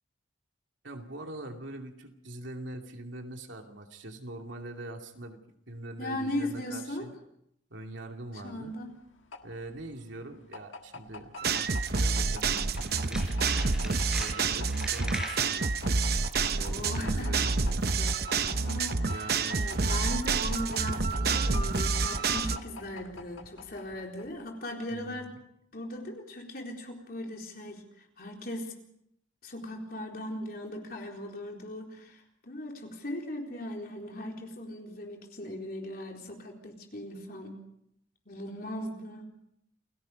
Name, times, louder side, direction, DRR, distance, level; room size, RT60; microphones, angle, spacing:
voice 1, 0.8-5.4 5.7-7.2 7.7-8.7 9.4-13.2 13.5-15.8 16.5-17.6 18.9-20.0 20.8-21.0 24.9-25.4, right 1 dB, 75° right, 3 dB, 2.6 m, -43 dB
voice 2, 6.0-7.1 8.4-9.0 16.6-17.4 17.6-25.4 25.7-28.7 29.4-37.6 38.3-39.3, left 1 dB, 50° left, 1 dB, 4.2 m, -38 dB
sound 1, 8.5-24.6, left 3 dB, 85° left, 1.7 m, -46 dB
sound 2, 11.4-22.6, right 4 dB, 50° right, 0.9 m, -28 dB
Tools, 12.7-15.5 16.0-16.3 16.6-16.7, equal, 5° right, 4.7 m, -40 dB
29.0 x 17.5 x 5.3 m, 0.75 s
head